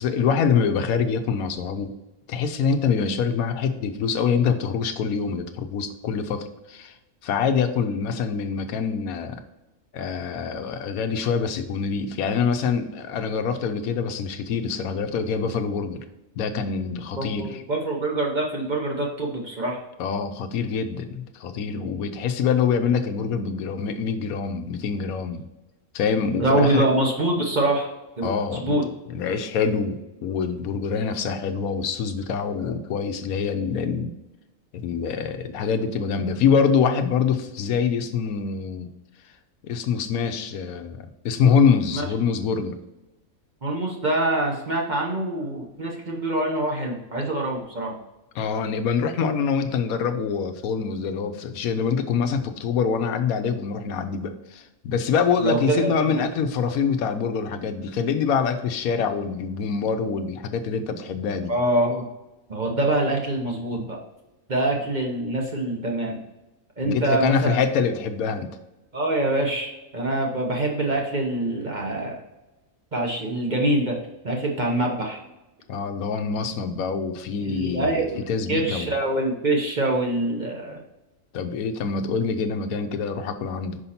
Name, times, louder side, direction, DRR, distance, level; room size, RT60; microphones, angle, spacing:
voice 1, 0.0-1.9 2.3-6.9 7.2-9.4 9.9-16.0 16.4-17.6 20.0-25.4 25.9-26.9 28.2-28.8 29.1-34.1 34.7-38.9 39.6-42.8 48.3-61.5 66.8-68.5 75.7-78.9 81.3-83.8, left 6 dB, 80° left, 7 dB, 1.1 m, -25 dB
voice 2, 17.2-19.8 26.4-27.9 28.2-28.8 41.9-42.0 43.6-47.9 55.4-56.2 61.5-62.1 62.5-64.0 64.5-66.2 66.8-67.6 68.9-72.2 72.9-74.0 74.2-75.2 77.4-80.8, right 1 dB, 35° right, 0 dB, 1.0 m, -25 dB
5.5 x 5.0 x 4.2 m, 1.0 s
omnidirectional pair, 1.5 m